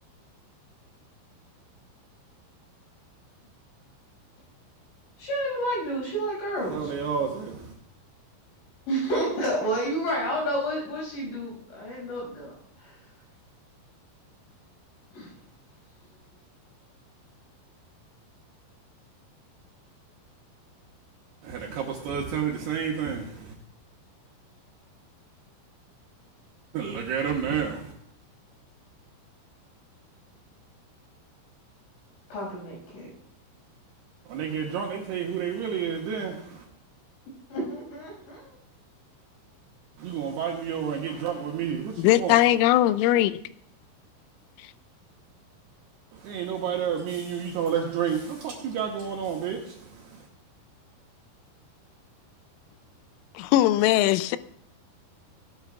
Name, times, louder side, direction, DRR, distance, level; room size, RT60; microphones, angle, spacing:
voice 1, 5.2-6.9 8.9-12.5 12.8-12.9 15.1-15.3 32.3-33.1 37.5-38.6, right 1 dB, 70° left, 8.3 m, -30 dB
voice 2, 6.6-7.7 21.4-23.5 26.7-27.9 34.3-36.6 40.0-42.4 46.1-50.3, right 7 dB, 70° right, 2.8 m, -30 dB
voice 3, 42.0-43.4 53.4-54.4, left 13 dB, 90° left, 3.1 m, -20 dB
18.5 x 12.0 x 2.3 m
omnidirectional pair, 5.6 m